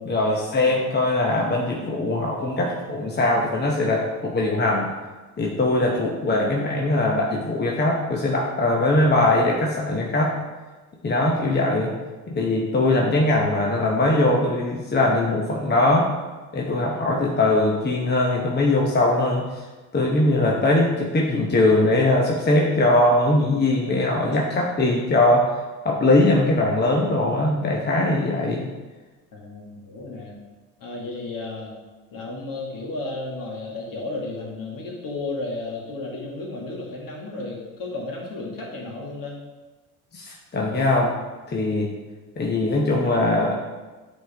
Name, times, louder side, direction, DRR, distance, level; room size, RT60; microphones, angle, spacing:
voice 1, 0.0-4.9 5.4-10.3 11.0-11.9 12.3-16.1 16.5-19.4 19.9-25.5 25.8-28.6 40.1-41.2 41.5-41.9 42.4-43.6, left 2 dB, 20° left, -2 dB, 1.0 m, -21 dB
voice 2, 29.3-30.3 30.8-31.7 32.1-39.4, left 2 dB, 45° left, -2 dB, 2.0 m, -33 dB
8.8 x 3.6 x 3.5 m, 1.2 s
hypercardioid pair, 55°, 45 cm